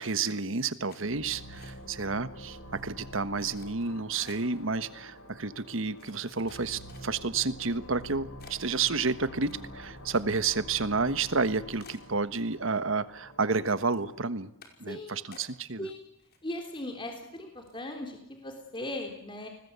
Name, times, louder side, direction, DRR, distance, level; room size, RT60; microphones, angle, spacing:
voice 1, 0.0-2.6 2.8-14.5 14.8-15.9, right 4 dB, 65° right, 13 dB, 1.3 m, -30 dB
sound 1, 0.9-2.1 2.4-2.8 3.3-4.6 5.3-5.4 6.0-7.4 7.9-8.0 8.4-10.6 10.9-11.0 11.4-11.5 11.8-12.9 13.2-13.6 13.9-14.1 14.6-14.9 15.3-15.9 16.2-16.8 17.2-17.3 17.6-17.9, left 5 dB, 50° left, 5.3 m, -55 dB
sound 2, 1.0-14.3, equal, 85° left, 6.9 m, -47 dB
voice 2, 14.9-15.2 15.8-16.0 16.4-19.5, left 1 dB, 25° left, 3 dB, 3.4 m, -38 dB
29.0 x 20.5 x 8.3 m, 0.81 s
head